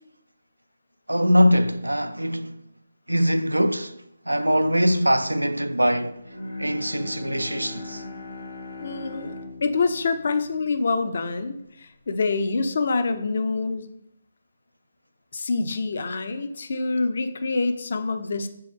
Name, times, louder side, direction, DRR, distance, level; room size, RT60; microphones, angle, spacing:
voice 1, 1.1-2.6 3.1-4.0 4.3-6.2 6.6-8.0, equal, 85° right, 0.4 m, -22 dB
Bowed string instrument, 6.2-11.6, left 2 dB, 85° left, 1.0 m, -40 dB
voice 2, 8.8-9.3 9.6-13.9 15.3-18.5, left 4 dB, 55° left, 0.6 m, -26 dB
6.1 x 4.5 x 3.6 m
figure-of-eight pair, 145°, 0 cm